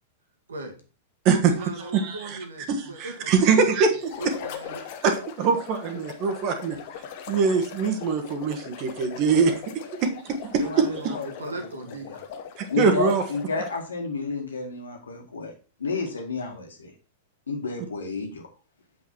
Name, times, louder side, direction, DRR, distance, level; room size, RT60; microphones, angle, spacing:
voice 1, 1.3-3.9 4.2-4.8 11.0-12.2, right 2 dB, 70° right, 4 dB, 1.9 m, -38 dB
voice 2, 1.9-2.4 2.7-3.9 5.0-6.8 7.3-9.5 10.7-11.1 12.8-13.2, right 5 dB, 40° right, 6 dB, 1.5 m, -23 dB
sound 1, 4.0-13.9, left 7 dB, 45° left, 1.1 m, -40 dB
voice 3, 10.5-11.7 12.7-15.5 15.8-16.9 17.5-18.4, left 4 dB, 70° left, 3 dB, 1.9 m, -31 dB
7.8 x 5.4 x 4.5 m, 0.37 s
figure-of-eight pair, 95°, 0 cm